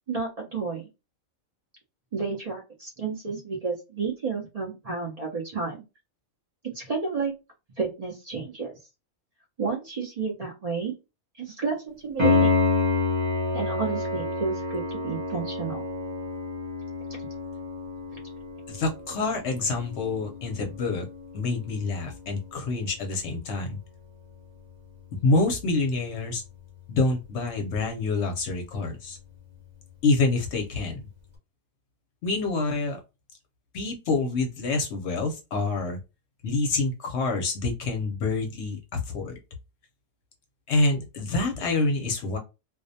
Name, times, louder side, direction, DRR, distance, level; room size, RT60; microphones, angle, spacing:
voice 1, 0.1-0.9 2.1-5.8 6.6-7.3 7.8-8.7 9.6-10.9 11.3-12.5 13.5-15.8, right 5 dB, 65° right, -1 dB, 0.3 m, -31 dB
Piano, 12.2-22.8 26.2-26.3, left 3 dB, 25° right, 0.7 m, -29 dB
voice 2, 18.7-21.1 21.3-23.8 25.2-26.4 26.9-29.2 30.0-31.0 32.2-33.0 33.7-36.0 36.4-39.4 40.7-42.4, left 3 dB, 65° left, 3 dB, 0.8 m, -27 dB
2.4 x 2.1 x 2.6 m, 0.26 s
omnidirectional pair, 1.4 m